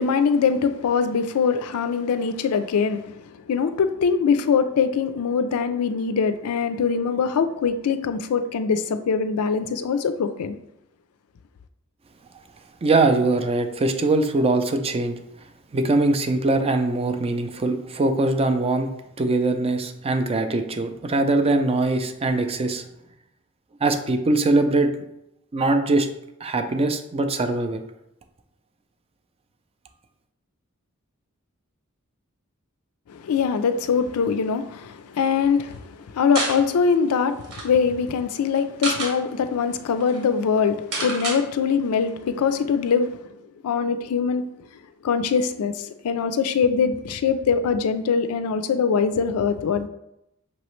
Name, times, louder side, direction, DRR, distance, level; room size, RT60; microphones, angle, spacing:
voice 1, 0.0-10.6 33.1-43.2 43.6-44.5 45.0-49.9, left 6 dB, 85° left, 0.4 m, -23 dB
voice 2, 12.8-15.2 15.7-18.9 19.2-22.8 23.8-24.9 25.5-26.1 26.4-27.8, right 2 dB, 25° right, 0.4 m, -22 dB
sound 1, 36.3-36.6 37.1-37.2 37.4-37.7 38.6-39.1 39.7-39.8 40.0-40.2 40.9-41.4, right 2 dB, 75° right, 1.3 m, -28 dB
5.6 x 3.0 x 3.1 m
head